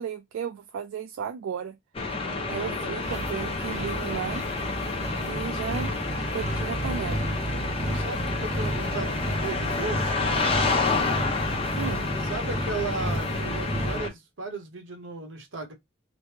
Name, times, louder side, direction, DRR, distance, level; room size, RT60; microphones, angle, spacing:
voice 1, 0.0-1.7 2.5-4.4 5.3-5.9 6.3-7.3 11.8-12.1, right 7 dB, 90° right, 0.3 m, -34 dB
sound 1, 1.9-14.1, left 3 dB, 30° left, 0.7 m, -29 dB
voice 2, 2.2-3.0 5.1-5.6 7.9-10.3 12.3-15.7, right 3 dB, 75° right, 0.9 m, -36 dB
sound 2, 3.0-14.0, right 1 dB, 35° right, 0.5 m, -32 dB
3.1 x 2.1 x 3.2 m
head